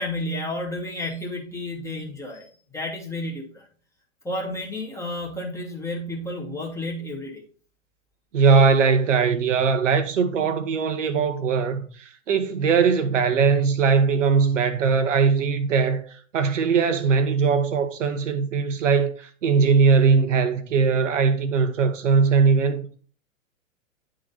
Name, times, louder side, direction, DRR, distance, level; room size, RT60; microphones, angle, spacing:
voice 1, 0.0-3.7 4.2-7.4, left 1 dB, 5° left, 1.5 m, -31 dB
voice 2, 8.3-22.9, right 5 dB, 65° right, 0.9 m, -20 dB
9.8 x 3.9 x 3.9 m
figure-of-eight pair, 110°, 41 cm